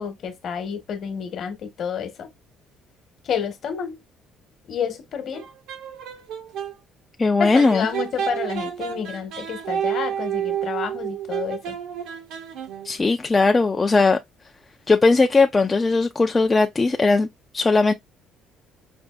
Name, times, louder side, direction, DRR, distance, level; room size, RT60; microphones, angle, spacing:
voice 1, 0.0-2.3 3.2-4.0 4.7-5.5 7.4-11.8, left 7 dB, 50° left, 1.0 m, -29 dB
sound 1, 5.3-6.7 7.5-13.0, right 9 dB, 80° right, 1.1 m, -30 dB
voice 2, 7.2-7.9 12.8-14.2 14.9-17.3 17.5-17.9, left 3 dB, 20° left, 0.3 m, -18 dB
5.1 x 2.6 x 2.3 m
cardioid pair, 150°, 0 cm